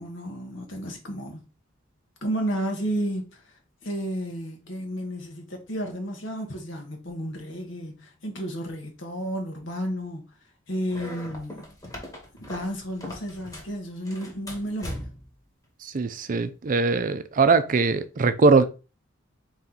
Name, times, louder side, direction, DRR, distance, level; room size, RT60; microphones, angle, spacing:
voice 1, 0.0-1.4 2.2-10.3 10.7-11.7 12.4-15.2, equal, 70° left, 1.2 m, -32 dB
sound 1, 10.9-13.7 14.0-15.3, left 1 dB, 20° left, 1.3 m, -39 dB
voice 2, 15.8-18.6, right 4 dB, 45° right, 0.5 m, -21 dB
4.3 x 3.1 x 3.9 m
head